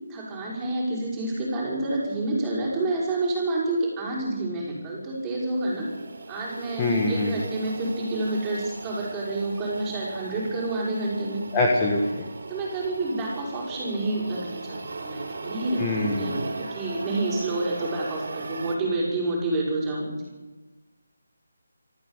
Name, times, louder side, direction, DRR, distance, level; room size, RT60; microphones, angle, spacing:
voice 1, 0.1-5.9 6.3-11.4 12.5-20.2, right 2 dB, 10° right, -5 dB, 5.8 m, -28 dB
sound 1, 5.3-18.8, right 3 dB, 55° right, 3.7 m, -38 dB
voice 2, 6.8-7.4 11.5-12.3 15.8-16.4, left 2 dB, 15° left, -1 dB, 1.8 m, -24 dB
25.0 x 14.0 x 8.2 m, 1.2 s
figure-of-eight pair, 170°, 0 cm